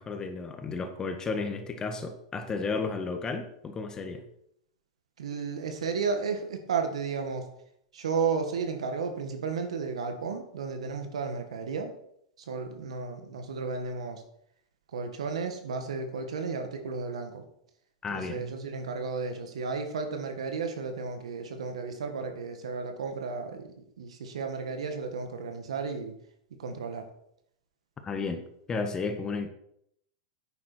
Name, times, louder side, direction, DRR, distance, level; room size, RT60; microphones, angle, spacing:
voice 1, 0.0-4.3 18.0-18.5 28.0-29.5, left 4 dB, 20° left, 7 dB, 1.6 m, -33 dB
voice 2, 5.2-7.5 7.9-11.9 12.4-14.2 14.9-17.4 18.1-26.1 26.6-27.1, right 5 dB, 85° right, 6 dB, 1.9 m, -33 dB
9.5 x 9.2 x 4.6 m, 0.72 s
hypercardioid pair, 115°, 3 cm